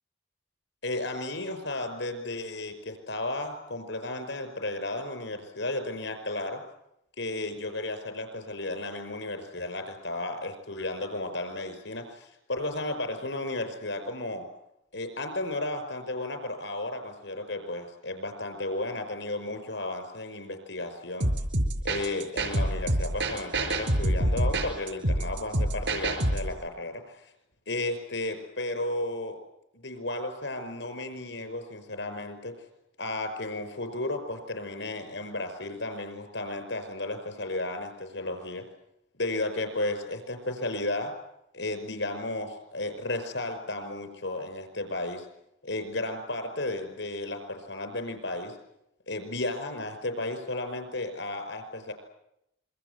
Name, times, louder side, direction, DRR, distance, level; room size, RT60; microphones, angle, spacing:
voice 1, 0.8-6.6 7.2-14.5 14.9-21.3 21.8-27.2 27.7-29.4 29.7-32.5 33.0-38.6 39.2-41.1 41.5-45.3 45.6-48.5 49.1-51.9, left 2 dB, 90° left, 8 dB, 5.4 m, -34 dB
sound 1, 21.2-26.5, right 1 dB, 85° right, 4.9 m, -27 dB
27.0 x 23.5 x 8.2 m, 0.83 s
head